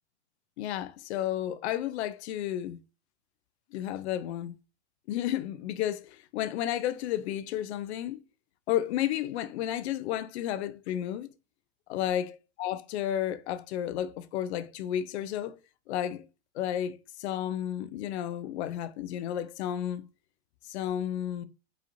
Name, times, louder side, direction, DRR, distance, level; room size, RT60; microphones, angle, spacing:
voice 1, 0.6-2.8 3.7-4.6 5.1-8.2 8.7-11.3 11.9-15.6 15.9-16.3 16.5-20.0 20.6-21.5, left 11 dB, 80° left, 0.5 m, -32 dB
4.8 x 2.8 x 2.6 m
supercardioid pair, 140°, 33 cm